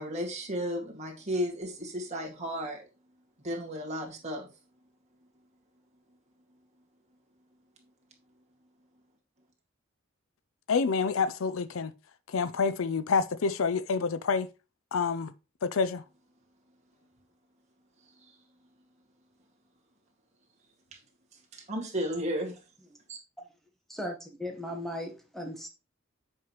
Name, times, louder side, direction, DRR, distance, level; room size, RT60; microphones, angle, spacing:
voice 1, 0.0-2.8 3.4-4.5 18.2-18.4 20.9-21.0 21.5-22.6 23.1-23.2, equal, 35° right, 1.9 m, -34 dB
voice 2, 10.7-11.9 12.3-14.5 14.9-15.3 15.6-16.0, left 5 dB, 75° left, 0.5 m, -27 dB
voice 3, 23.9-25.7, left 1 dB, ahead, 1.1 m, -37 dB
7.5 x 5.5 x 3.0 m
head